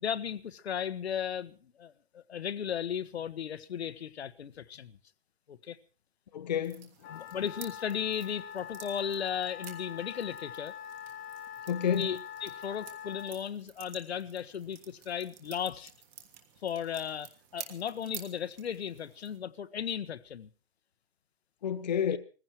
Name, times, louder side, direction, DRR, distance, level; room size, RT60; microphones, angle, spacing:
voice 1, 0.0-5.0 5.5-5.8 7.1-10.7 11.9-15.9 16.6-20.5 22.1-22.2, left 8 dB, 80° left, 1.3 m, -36 dB
voice 2, 6.3-7.3 11.7-12.1 21.6-22.2, left 8 dB, 40° left, 0.9 m, -30 dB
sound 1, 6.6-19.4, right 9 dB, 15° right, 1.5 m, -51 dB
Wind instrument woodwind instrument, 7.0-13.4, left 9 dB, 15° left, 1.5 m, -44 dB
20.0 x 15.5 x 4.5 m
hypercardioid pair, 180°, 32 cm